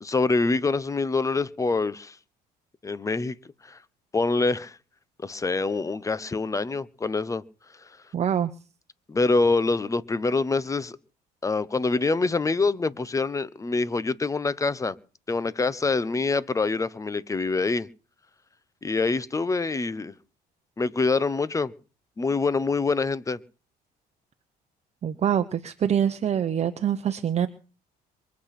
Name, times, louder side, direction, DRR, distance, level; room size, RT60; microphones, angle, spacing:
voice 1, 0.0-2.2 2.8-3.4 3.6-3.8 4.1-4.8 5.2-7.4 9.1-11.0 11.4-15.0 15.3-17.9 18.8-20.1 20.8-21.7 22.2-23.4, left 3 dB, 20° left, 0.9 m, -25 dB
voice 2, 8.1-8.5 25.0-27.5, right 9 dB, 40° right, 0.9 m, -25 dB
23.5 x 8.4 x 5.9 m
cardioid pair, 110°, 17 cm